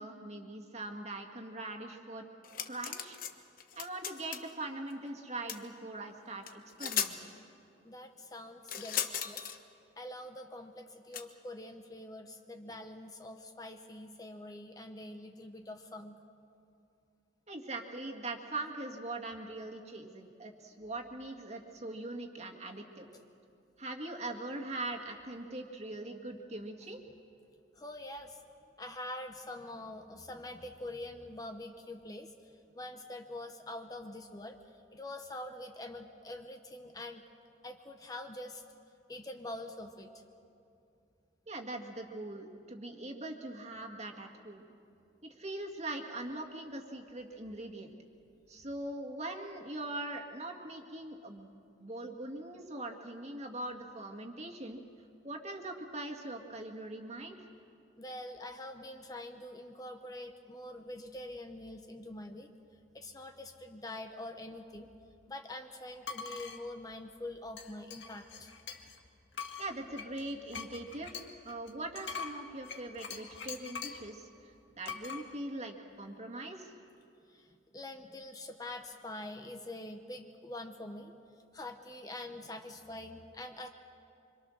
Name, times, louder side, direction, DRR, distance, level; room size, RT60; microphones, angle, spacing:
voice 1, 0.0-2.2 2.7-3.2 3.8-7.2 17.5-23.1 23.8-27.0 41.5-44.7 45.2-47.9 48.5-51.5 51.8-54.8 55.2-57.4 69.6-74.5 74.8-76.7, right 2 dB, 35° right, 1 dB, 2.1 m, -41 dB
sound 1, 2.4-3.3 3.6-4.5 5.5-5.6 6.5-6.6 6.8-7.1 8.7-9.6 11.1-11.2, left 9 dB, 50° left, 1.2 m, -36 dB
voice 2, 7.8-9.4 10.0-16.2 27.7-28.4 28.8-34.6 34.9-37.2 37.6-38.6 39.1-40.1 58.0-62.5 62.9-64.9 65.3-68.5 77.3-81.1 81.5-83.7, left 1 dB, 20° left, 5 dB, 1.0 m, -45 dB
sound 2, 66.0-66.6 67.6-69.0 69.3-74.1 74.9-75.2, left 6 dB, 75° left, 1.9 m, -43 dB
26.0 x 25.5 x 6.5 m, 2.6 s
head